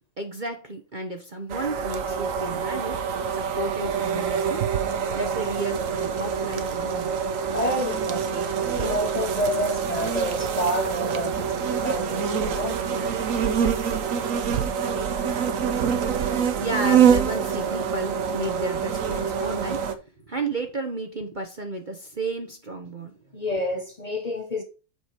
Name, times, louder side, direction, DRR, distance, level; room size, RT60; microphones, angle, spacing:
voice 1, 0.2-3.0 3.3-4.6 5.1-7.2 16.6-23.2, right 2 dB, 35° right, 1.1 m, -33 dB
sound 1, 1.5-19.9, right 7 dB, 60° right, 1.2 m, -25 dB
voice 2, 7.5-12.8 23.3-24.6, left 1 dB, 25° left, 1.3 m, -29 dB
7.9 x 5.2 x 4.4 m
omnidirectional pair, 1.7 m